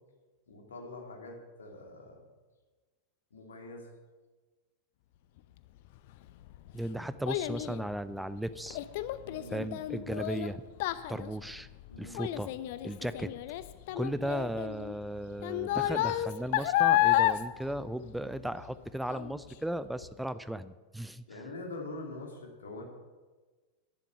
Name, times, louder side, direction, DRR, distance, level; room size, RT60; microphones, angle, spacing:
voice 1, 0.5-2.2 3.3-3.9 9.2-9.6 11.9-12.2 13.9-14.1 21.3-22.8, left 2 dB, 70° left, 1 dB, 2.6 m, -44 dB
Child speech kid speaking, 6.1-18.7 19.1-19.5 20.0-20.1, left 14 dB, 50° left, 0.6 m, -31 dB
voice 2, 6.7-8.8 9.5-10.6 11.1-11.7 12.0-12.5 12.8-13.3 13.9-21.4, right 1 dB, 5° right, 14 dB, 0.5 m, -36 dB
11.0 x 11.0 x 5.7 m, 1.3 s
figure-of-eight pair, 90°, 0 cm